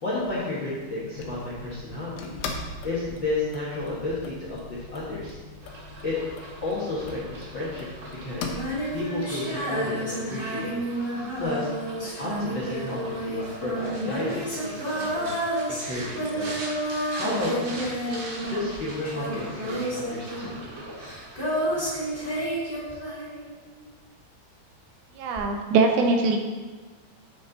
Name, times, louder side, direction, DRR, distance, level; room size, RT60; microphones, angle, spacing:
voice 1, 0.0-5.4 6.0-6.2 6.6-7.9 8.2-8.5 8.9-10.8 11.4-11.7 12.2-15.3 15.7-16.5 17.1-17.9 18.5-20.6, left 2 dB, 50° left, -7 dB, 1.4 m, -32 dB
sound 1, 1.2-9.0, left 3 dB, 75° left, 2.4 m, -40 dB
sound 2, 5.6-22.5, right 2 dB, 60° right, 2.8 m, -42 dB
Female singing, 8.4-23.8 25.4-25.5, right 1 dB, 15° left, 2.3 m, -30 dB
voice 2, 25.2-26.4, right 3 dB, 80° right, 3 dB, 2.4 m, -22 dB
8.8 x 6.4 x 4.1 m, 1.4 s
omnidirectional pair, 4.5 m